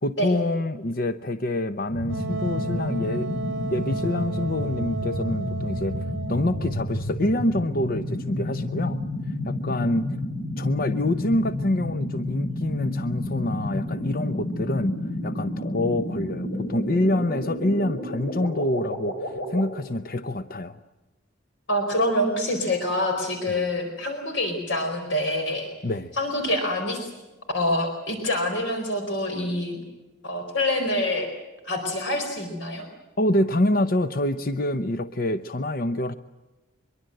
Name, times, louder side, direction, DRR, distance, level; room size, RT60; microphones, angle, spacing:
voice 1, 0.0-3.3 3.7-6.0 6.3-9.0 9.5-10.1 10.6-15.0 15.2-20.8 25.8-26.1 33.2-36.1, left 1 dB, 45° left, 11 dB, 0.8 m, -26 dB
sound 1, 1.9-19.7, left 1 dB, 80° left, 7.2 m, -31 dB
Wind instrument woodwind instrument, 2.1-6.9, right 3 dB, 60° right, 1.4 m, -33 dB
voice 2, 21.7-25.7 26.1-27.1 27.5-29.8 30.2-31.3 31.6-32.9, left 1 dB, 60° left, 4 dB, 4.4 m, -26 dB
24.0 x 23.0 x 7.8 m, 1.1 s
head